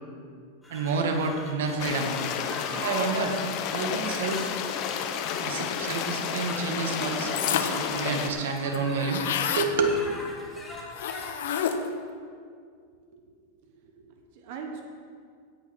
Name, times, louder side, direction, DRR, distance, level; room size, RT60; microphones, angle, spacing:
sound 1, 0.6-11.4, left 1 dB, 5° left, 1.2 m, -43 dB
voice 1, 0.7-2.1 2.7-3.4 3.7-4.5 5.4-9.3 9.6-10.0, right 4 dB, 80° right, 4 dB, 1.7 m, -29 dB
sound 2, 1.8-8.3, left 8 dB, 30° left, 0.8 m, -31 dB
sound 3, 7.3-7.9 8.3-8.4 8.6-9.7 10.9-12.0, left 8 dB, 70° left, 0.9 m, -29 dB
voice 2, 13.6-14.8, right 6 dB, 45° right, 2 dB, 1.2 m, -42 dB
17.0 x 6.1 x 5.9 m, 2.2 s
supercardioid pair, 180°, 0 cm